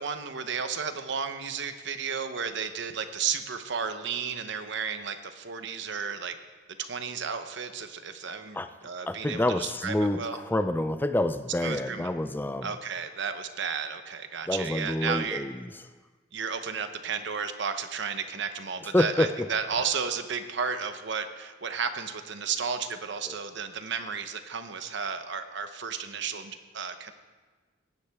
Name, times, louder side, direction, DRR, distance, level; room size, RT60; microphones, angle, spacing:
voice 1, 0.0-6.4 6.8-10.4 11.6-12.2 12.6-15.4 16.3-27.1, right 6 dB, 60° right, 8 dB, 0.9 m, -33 dB
voice 2, 9.1-12.8 14.5-15.7 18.9-19.5 23.3-23.4, left 1 dB, 10° left, 10 dB, 0.4 m, -27 dB
18.0 x 9.8 x 3.5 m, 1.4 s
head